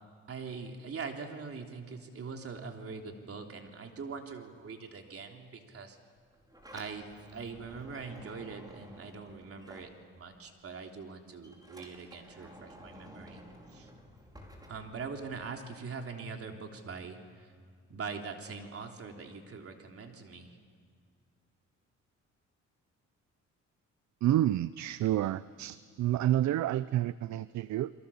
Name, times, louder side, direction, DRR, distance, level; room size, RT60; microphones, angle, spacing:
voice 1, 0.3-6.0 6.7-13.4 13.7-13.9 14.7-17.5 17.9-20.5, right 5 dB, 50° right, 3 dB, 3.4 m, -42 dB
Sliding door, 6.3-10.5 10.8-15.5, equal, 15° right, 5.2 m, -53 dB
voice 2, 24.2-27.9, right 13 dB, 70° right, 16 dB, 0.6 m, -29 dB
29.5 x 23.0 x 7.2 m, 2.2 s
cardioid pair, 90°, 30 cm